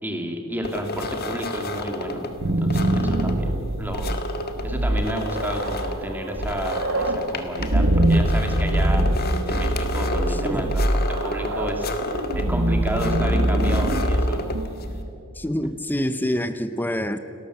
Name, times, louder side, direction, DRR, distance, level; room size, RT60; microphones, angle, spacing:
voice 1, 0.0-4.2 4.6-9.1 9.5-11.9 12.3-14.5, equal, 10° right, 3 dB, 2.6 m, -31 dB
sound 1, 0.6-15.0, left 1 dB, 45° left, 1.8 m, -32 dB
sound 2, 2.1-15.0, right 1 dB, 60° right, 1.5 m, -23 dB
voice 2, 10.3-10.7 15.3-17.2, equal, 10° left, 10 dB, 0.7 m, -26 dB
29.5 x 13.0 x 8.0 m, 2.6 s
head